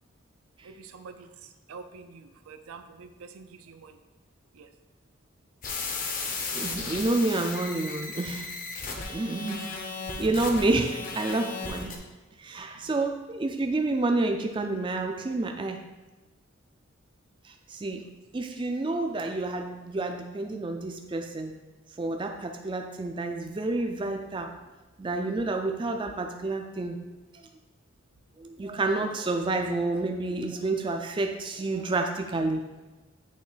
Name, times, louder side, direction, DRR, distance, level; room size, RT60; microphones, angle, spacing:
voice 1, 0.6-4.0 4.5-4.7 9.6-9.8 12.7-13.0, right 5 dB, 85° right, 8 dB, 0.5 m, -47 dB
sound 1, 5.6-12.0, left 4 dB, 40° left, 0.7 m, -35 dB
voice 2, 6.5-8.5 9.1-9.7 10.2-11.9 12.4-15.8 17.4-18.0 18.3-21.5 22.0-24.5 25.0-27.0 27.3-27.4 28.4-32.6, right 2 dB, 25° right, 4 dB, 0.3 m, -29 dB
8.4 x 3.1 x 3.9 m, 1.2 s
head